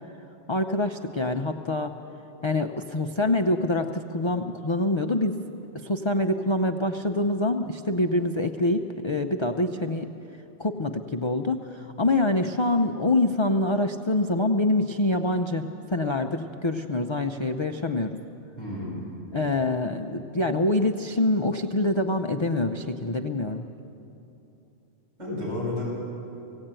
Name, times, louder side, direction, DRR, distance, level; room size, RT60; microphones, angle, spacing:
voice 1, 0.5-1.9 2.4-5.4 5.7-10.1 10.6-18.2 19.3-23.7, left 2 dB, 40° left, 4 dB, 0.4 m, -25 dB
voice 2, 18.6-19.0 25.2-25.8, left 2 dB, 75° right, -7 dB, 7.1 m, -31 dB
18.0 x 16.5 x 8.9 m, 3.0 s
omnidirectional pair, 1.3 m